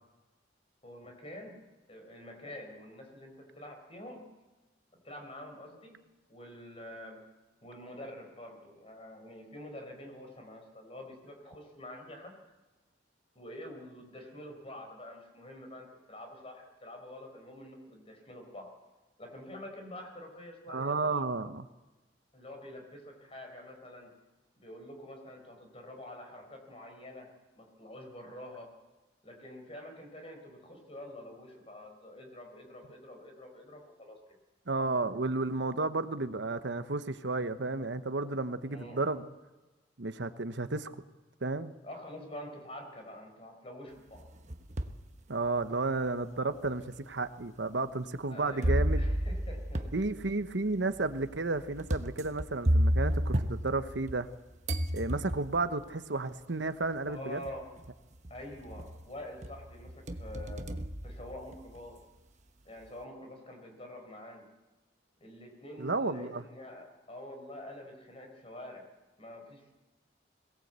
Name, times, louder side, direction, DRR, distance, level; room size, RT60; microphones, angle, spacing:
voice 1, 0.8-1.6 1.9-4.2 5.0-6.0 6.3-7.2 7.6-12.3 13.3-18.7 19.2-21.2 22.3-24.1 24.6-27.3 27.5-28.7 29.2-34.2 38.7-39.0 41.8-44.3 48.3-49.9 57.1-57.7 58.3-60.6 61.0-62.0 62.6-64.5 65.2-68.8 69.2-69.7, left 1 dB, 30° left, 3 dB, 4.9 m, -47 dB
voice 2, 20.7-21.6 34.7-39.3 40.0-41.0 41.4-41.7 45.3-49.0 49.9-54.3 54.9-57.4 65.8-66.4, right 3 dB, 75° right, 11 dB, 1.0 m, -32 dB
sound 1, 44.1-45.0 45.6-45.7 46.6-46.7 48.6-54.3 54.7-55.7 56.8-56.9 57.4-57.9 58.2-59.0 59.4-61.8, equal, 40° right, 1.1 m, -32 dB
22.0 x 18.0 x 8.2 m, 1.2 s
head